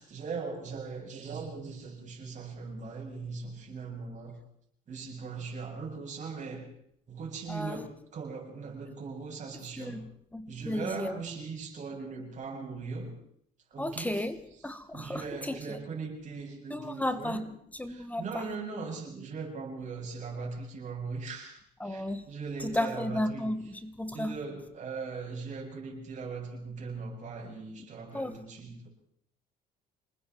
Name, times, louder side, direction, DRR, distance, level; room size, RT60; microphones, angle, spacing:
voice 1, 0.0-4.4 4.9-6.7 7.1-10.1 10.5-13.2 13.7-14.3 14.9-17.5 17.9-23.5 24.1-28.9, right 4 dB, 45° right, 7.9 m, -39 dB
voice 2, 7.5-7.8 9.8-11.2 13.8-15.8 16.7-17.5 17.8-18.5 21.8-22.3 22.6-24.4 28.1-28.4, left 1 dB, 10° left, 1.5 m, -34 dB
27.5 x 20.0 x 4.7 m
cardioid pair, 110°, 17 cm